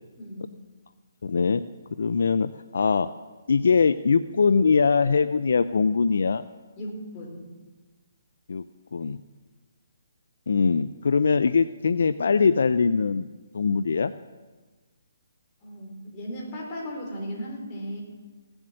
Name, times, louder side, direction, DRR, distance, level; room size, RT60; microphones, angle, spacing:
voice 1, 0.2-0.5 6.8-7.4 15.6-18.0, equal, 25° left, -2 dB, 4.0 m, -36 dB
voice 2, 1.2-1.6 1.9-3.1 3.5-6.4 8.5-8.6 8.9-9.2 10.5-13.3 13.5-14.1, left 5 dB, 70° left, 13 dB, 0.5 m, -22 dB
16.5 x 7.9 x 7.6 m, 1.3 s
hypercardioid pair, 155°, 0 cm